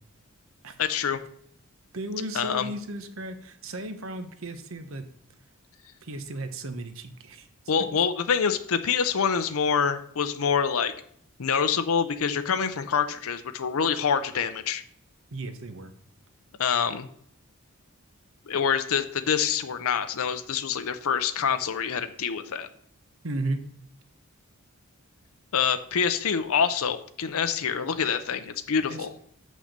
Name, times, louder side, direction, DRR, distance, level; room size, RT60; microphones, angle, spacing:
voice 1, 0.8-1.2 2.3-2.7 7.7-10.9 11.4-14.8 16.6-17.1 18.5-22.7 25.5-29.1, left 6 dB, 75° left, 9 dB, 0.6 m, -26 dB
voice 2, 1.9-5.1 6.0-7.5 15.3-15.9 23.2-23.6 28.9-29.1, right 2 dB, 65° right, 9 dB, 1.0 m, -35 dB
6.5 x 6.4 x 6.5 m, 0.64 s
head